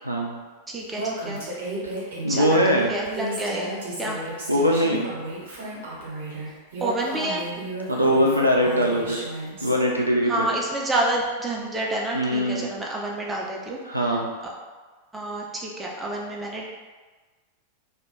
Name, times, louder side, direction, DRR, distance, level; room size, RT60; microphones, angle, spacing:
voice 1, 0.0-0.4 2.2-2.9 4.5-5.1 7.9-9.2 9.6-10.5 12.1-12.7 13.9-14.3, equal, 90° right, -1 dB, 0.3 m, -21 dB
voice 2, 0.7-1.4 2.3-4.2 6.8-7.4 10.2-14.2 15.1-16.8, right 1 dB, 15° right, -2 dB, 0.5 m, -29 dB
Female speech woman speaking, 0.9-9.7, right 1 dB, 60° right, 0.8 m, -33 dB
2.2 x 2.1 x 3.0 m, 1.4 s
figure-of-eight pair, 90°, 0 cm